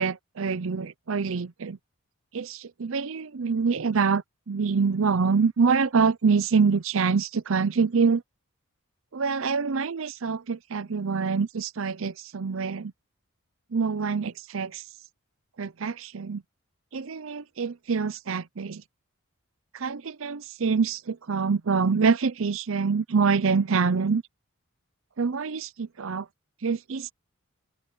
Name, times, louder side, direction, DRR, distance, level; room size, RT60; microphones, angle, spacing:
voice 1, 0.0-1.8 2.3-8.2 9.1-12.9 13.7-14.8 15.6-16.4 16.9-18.8 19.7-24.2 25.2-26.3 26.6-27.1, right 5 dB, 65° right, 0.6 m, -25 dB
open air
head